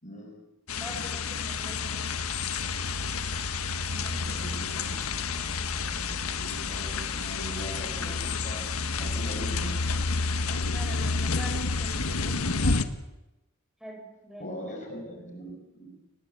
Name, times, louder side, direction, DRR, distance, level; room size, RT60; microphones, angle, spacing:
voice 1, 0.0-0.4 4.0-5.1 5.4-9.8 14.4-16.0, equal, 35° left, 3 dB, 6.2 m, -41 dB
sound 1, 0.7-12.8, left 4 dB, 85° left, 1.5 m, -30 dB
voice 2, 0.7-2.1 3.9-4.7 5.3-5.6 10.4-12.9 13.8-14.6, equal, ahead, 1 dB, 6.5 m, -45 dB
29.5 x 18.5 x 8.3 m, 0.97 s
head